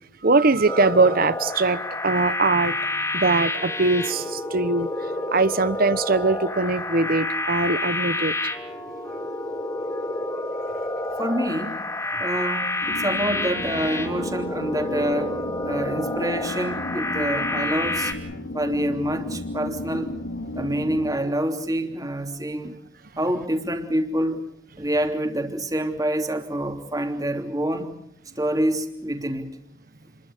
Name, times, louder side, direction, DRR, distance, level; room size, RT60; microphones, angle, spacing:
voice 1, 0.2-2.8 3.1-8.3, right 3 dB, 50° right, 1.1 m, -21 dB
sound 1, 0.7-18.1, left 2 dB, 15° left, 3.5 m, -29 dB
voice 2, 11.2-11.9 12.2-15.3 15.6-18.1 18.5-20.1 20.5-22.8 23.2-24.4 24.8-27.9 28.4-29.5, right 1 dB, 20° right, 3.1 m, -26 dB
sound 2, 12.8-21.2, left 2 dB, 70° left, 3.3 m, -34 dB
29.5 x 22.0 x 6.7 m
head